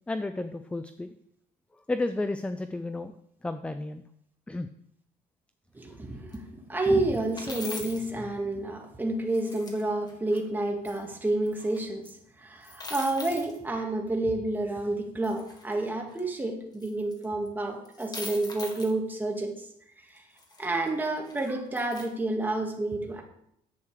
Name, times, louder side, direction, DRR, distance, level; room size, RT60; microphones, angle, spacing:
voice 1, 0.1-1.1 1.9-3.1 3.4-4.0 4.5-4.7, left 2 dB, 5° left, 10 dB, 0.4 m, -32 dB
voice 2, 5.7-19.7 20.1-20.2 20.6-23.2, right 2 dB, 10° right, 1 dB, 1.9 m, -29 dB
sound 1, 6.3-6.4 7.1-8.1 9.3-10.4 10.8-11.0 11.5-11.8 12.0-12.1 12.6-13.6 15.2-16.2 16.8-17.5 17.8-18.9 20.2-22.1, left 2 dB, 25° left, 2.0 m, -42 dB
10.5 x 8.2 x 4.8 m, 0.75 s
cardioid pair, 135°, 16 cm